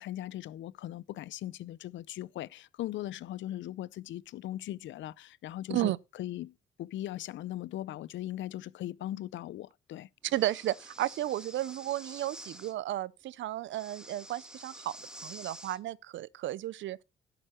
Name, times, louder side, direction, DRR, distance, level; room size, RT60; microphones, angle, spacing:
voice 1, 0.0-10.1, left 13 dB, 70° left, 0.5 m, -39 dB
Breathing, 10.3-12.7 13.7-15.8, equal, 5° right, 1.4 m, -49 dB
voice 2, 10.3-15.0 15.2-17.0, right 14 dB, 70° right, 0.6 m, -33 dB
11.0 x 7.8 x 4.3 m
cardioid pair, 90°, 20 cm